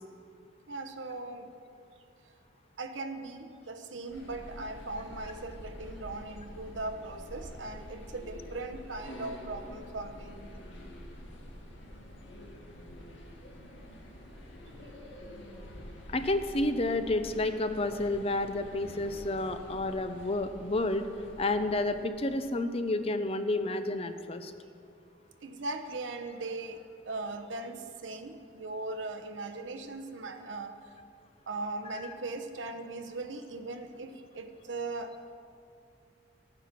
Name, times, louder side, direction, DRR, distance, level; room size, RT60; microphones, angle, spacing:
voice 1, 0.7-1.5 2.8-10.4 25.4-30.8 31.5-35.1, right 2 dB, 75° right, 7 dB, 1.0 m, -39 dB
sound 1, 4.1-22.0, equal, 80° left, 2.2 m, -47 dB
voice 2, 16.1-21.1 21.4-24.5 32.0-32.1, left 2 dB, 30° left, 9 dB, 0.6 m, -30 dB
14.0 x 9.8 x 6.0 m, 2.5 s
head